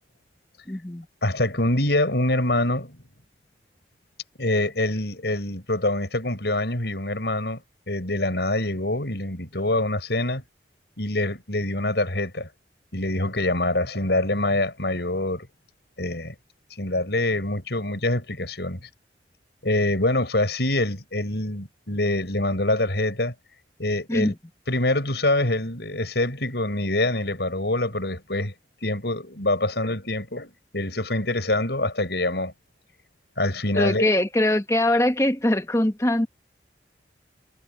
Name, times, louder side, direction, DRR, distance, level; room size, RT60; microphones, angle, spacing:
voice 1, 0.7-1.1 24.1-24.3 33.7-36.3, left 1 dB, 15° left, 1.2 m, -22 dB
voice 2, 1.2-3.0 4.4-7.6 7.9-10.4 11.0-12.5 12.9-15.5 16.0-16.3 16.8-18.9 19.6-23.3 23.8-24.3 24.7-28.5 28.8-32.5 33.4-34.1, left 1 dB, 75° left, 5.9 m, -25 dB
head